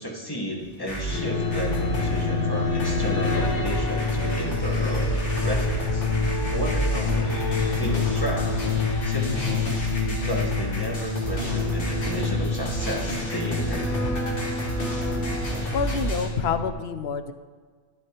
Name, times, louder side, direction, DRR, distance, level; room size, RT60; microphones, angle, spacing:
voice 1, 0.0-6.1 6.5-8.5 9.0-9.6 10.1-14.1, equal, 20° left, -2 dB, 1.3 m, -33 dB
sound 1, 0.6-2.3 2.8-16.3, right 2 dB, 55° left, 1.5 m, -31 dB
sound 2, 1.1-16.7, left 3 dB, 85° left, 1.3 m, -27 dB
voice 2, 15.4-17.3, left 6 dB, 70° left, 9 dB, 0.8 m, -28 dB
11.5 x 10.5 x 2.9 m, 1.5 s
omnidirectional pair, 1.1 m